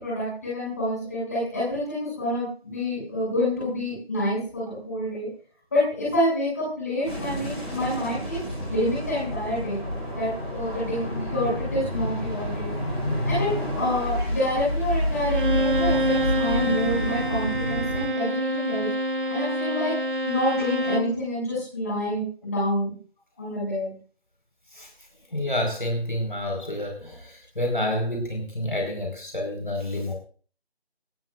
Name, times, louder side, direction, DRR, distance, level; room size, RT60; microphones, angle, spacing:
voice 1, 0.0-5.3 5.7-8.4 8.7-9.8 10.2-12.7 13.2-18.9 19.3-20.0 20.2-22.9 23.4-23.9, left 1 dB, 15° left, -7 dB, 7.4 m, -27 dB
sound 1, 7.0-18.1, equal, ahead, 3.6 m, -29 dB
Bowed string instrument, 15.2-21.2, right 1 dB, 50° right, 2.1 m, -27 dB
voice 2, 25.3-30.1, left 1 dB, 50° left, 1 dB, 5.2 m, -29 dB
20.5 x 18.0 x 2.6 m, 0.42 s
figure-of-eight pair, 175°, 32 cm